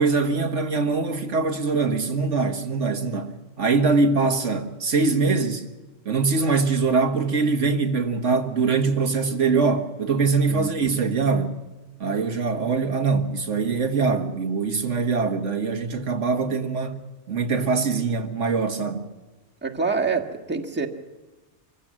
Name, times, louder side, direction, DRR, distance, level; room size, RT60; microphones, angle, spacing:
voice 1, 0.0-5.7 6.1-11.5 12.0-17.0 17.3-19.0, right 4 dB, 85° right, 1.9 m, -23 dB
voice 2, 19.6-20.9, right 4 dB, 10° right, 1.6 m, -26 dB
25.0 x 16.0 x 7.5 m
omnidirectional pair, 1.2 m